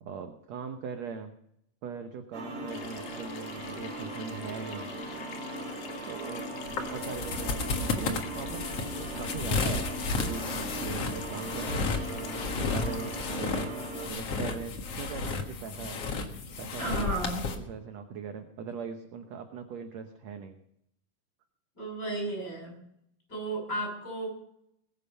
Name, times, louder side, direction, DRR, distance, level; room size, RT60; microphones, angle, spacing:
voice 1, 0.0-1.3 1.8-4.9 6.0-6.5 6.8-9.9 10.2-13.7 14.1-17.1 17.6-20.6, right 6 dB, 70° right, 6 dB, 1.6 m, -40 dB
sound 1, 2.3-14.1, right 1 dB, 35° right, 4.6 m, -39 dB
Water tap faucet / Sink (filling or washing), 2.7-13.3, left 9 dB, 85° left, 3.1 m, -46 dB
sound 2, 6.7-17.5, left 4 dB, 50° left, 2.1 m, -33 dB
voice 2, 16.8-17.5 21.8-22.8 23.3-24.3, right 2 dB, 25° left, -1 dB, 8.6 m, -33 dB
20.5 x 9.1 x 5.6 m, 0.74 s
omnidirectional pair, 4.4 m